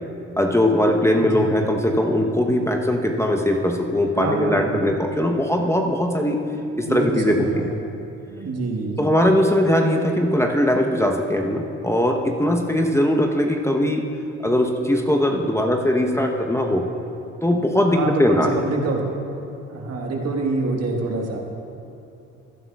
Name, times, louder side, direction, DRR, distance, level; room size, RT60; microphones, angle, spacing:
voice 1, 0.4-6.4 6.7-7.5 9.0-14.0 14.4-16.9 17.4-18.5, left 1 dB, 10° left, 2 dB, 0.9 m, -20 dB
voice 2, 1.2-1.6 4.2-4.8 6.5-7.7 8.3-9.2 16.8-16.9 17.9-19.0 19.7-21.4, right 3 dB, 55° right, 1 dB, 1.5 m, -26 dB
15.5 x 11.0 x 2.4 m, 2.7 s
supercardioid pair, 55°, 31 cm